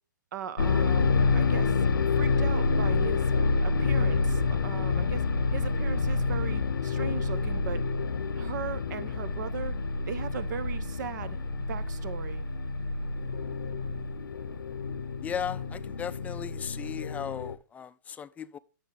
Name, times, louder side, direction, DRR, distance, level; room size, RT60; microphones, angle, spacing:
voice 1, 0.3-1.8 2.2-3.3 3.6-5.2 5.5-7.8 8.4-9.8 10.1-11.4 11.7-12.4, right 7 dB, 65° right, 1.0 m, -38 dB
sound 1, 0.6-17.5, left 4 dB, 90° left, 0.7 m, -28 dB
voice 2, 15.2-18.6, left 8 dB, 15° left, 0.4 m, -36 dB
10.0 x 7.0 x 3.5 m
hypercardioid pair, 125°, 11 cm